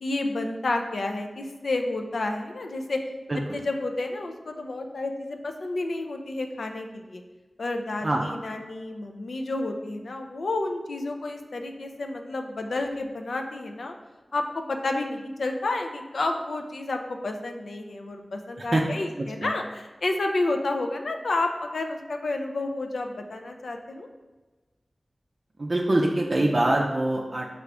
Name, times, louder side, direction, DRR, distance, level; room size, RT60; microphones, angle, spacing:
voice 1, 0.0-3.0 3.5-7.2 7.6-13.9 14.3-24.1, left 2 dB, 85° left, 4 dB, 0.3 m, -30 dB
voice 2, 19.2-19.5 25.6-27.5, right 1 dB, 50° right, -2 dB, 0.4 m, -24 dB
4.8 x 2.4 x 3.3 m, 1.2 s
wide cardioid pair, 65°, 0 cm